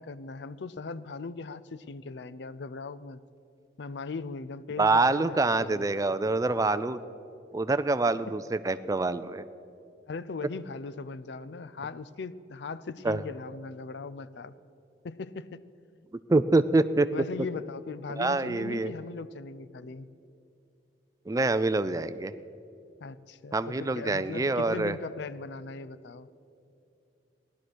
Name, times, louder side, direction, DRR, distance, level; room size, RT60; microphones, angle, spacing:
voice 1, 0.0-3.2 3.8-5.9 10.1-14.5 15.0-15.6 17.1-20.1 23.0-23.5 23.8-26.3, left 4 dB, 65° left, 16 dB, 0.5 m, -39 dB
voice 2, 4.8-7.0 7.5-9.4 13.0-13.2 16.3-17.1 18.2-18.9 21.3-22.3 23.5-25.0, right 3 dB, 20° right, 13 dB, 0.4 m, -26 dB
16.0 x 11.5 x 6.2 m, 2.7 s
head